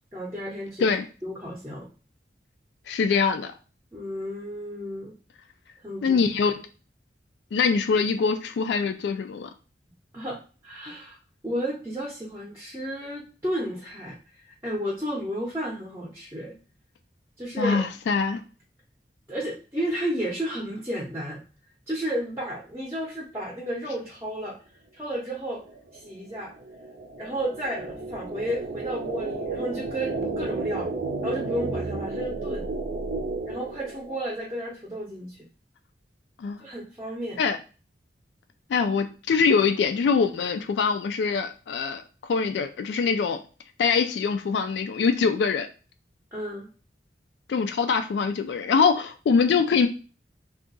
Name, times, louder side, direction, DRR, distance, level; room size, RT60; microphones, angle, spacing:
voice 1, 0.1-0.9 1.2-1.9 3.9-5.1 5.8-6.2 10.1-10.4 10.6-11.2 11.4-14.1 14.5-16.6 17.4-17.9 19.3-21.4 21.9-24.6 24.9-25.6 26.0-26.5 27.2-30.9 31.2-32.6 33.4-35.4 36.6-37.4 46.3-46.7, equal, 15° right, -4 dB, 0.6 m, -32 dB
voice 2, 2.9-3.5 6.0-6.5 7.5-9.5 17.6-18.4 36.4-36.6 37.4-37.6 38.7-42.0 42.3-43.4 43.8-45.7 47.5-49.9, left 5 dB, 80° left, 8 dB, 0.3 m, -23 dB
sound 1, 25.5-34.4, right 3 dB, 65° right, 0.5 m, -33 dB
2.7 x 2.4 x 3.8 m, 0.36 s
head